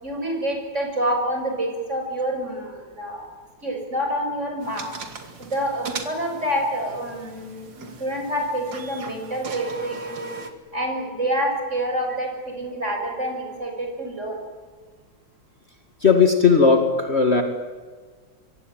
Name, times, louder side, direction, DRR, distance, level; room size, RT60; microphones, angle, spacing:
voice 1, 0.0-3.3 3.6-4.9 5.4-10.3 10.7-14.4, right 1 dB, 35° right, 3 dB, 6.8 m, -27 dB
sound 1, 4.6-10.5, right 4 dB, 75° right, 3.1 m, -38 dB
voice 2, 16.0-17.4, left 5 dB, 35° left, 4 dB, 2.4 m, -17 dB
26.5 x 24.0 x 9.2 m, 1.5 s
omnidirectional pair, 2.0 m